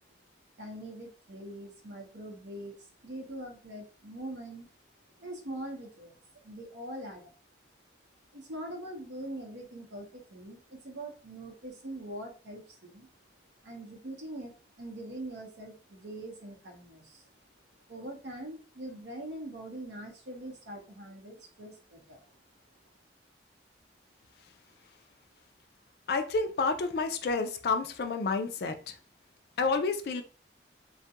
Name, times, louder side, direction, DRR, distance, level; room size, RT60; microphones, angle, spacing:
voice 1, 0.6-4.7 5.2-7.3 8.3-13.1 13.6-17.3 17.9-22.2, right 1 dB, 75° right, 0.8 m, -43 dB
voice 2, 26.1-29.0 29.6-30.2, left 4 dB, 55° left, 0.3 m, -29 dB
2.3 x 2.1 x 2.8 m
head